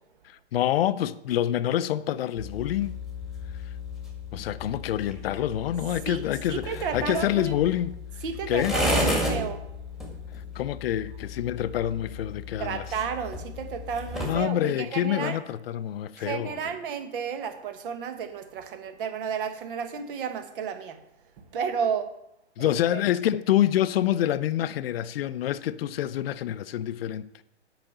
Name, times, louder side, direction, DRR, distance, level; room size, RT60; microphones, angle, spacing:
voice 1, 0.2-3.0 4.3-8.0 8.5-8.8 10.5-12.8 14.2-16.7 22.6-27.3, left 12 dB, 55° left, 0.7 m, -27 dB
sound 1, 2.4-14.5, left 1 dB, ahead, 1.7 m, -33 dB
voice 2, 6.0-7.5 8.2-9.6 12.6-15.4 16.2-21.0 21.5-22.1 22.6-23.0, right 7 dB, 50° right, 1.5 m, -32 dB
8.8 x 5.9 x 8.0 m
hypercardioid pair, 140°, 35 cm